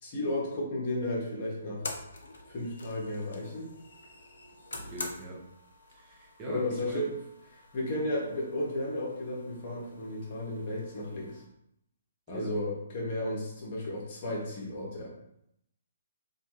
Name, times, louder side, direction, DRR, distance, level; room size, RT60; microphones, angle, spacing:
voice 1, 0.0-1.9 2.5-3.7 6.5-7.1 7.7-11.4 12.3-15.1, left 1 dB, 40° left, -3 dB, 0.8 m, -33 dB
sound 1, 0.8-11.5, left 2 dB, 65° left, 0.4 m, -47 dB
voice 2, 4.8-5.4 5.9-7.1 12.3-12.5, right 1 dB, 25° right, -4 dB, 0.6 m, -42 dB
2.3 x 2.2 x 2.9 m, 0.77 s
figure-of-eight pair, 130°, 0 cm